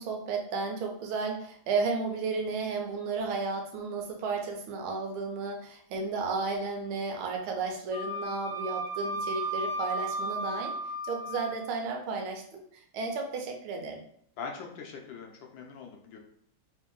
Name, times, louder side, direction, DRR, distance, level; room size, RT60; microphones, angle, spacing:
voice 1, 0.0-10.7 11.0-12.6 12.9-14.0, right 4 dB, 85° right, 2 dB, 1.6 m, -33 dB
Wind instrument woodwind instrument, 7.9-11.6, right 1 dB, 40° left, 0.8 m, -34 dB
voice 2, 14.4-16.2, left 5 dB, 70° left, 1 dB, 1.3 m, -42 dB
3.6 x 2.7 x 3.7 m, 0.64 s
omnidirectional pair, 2.3 m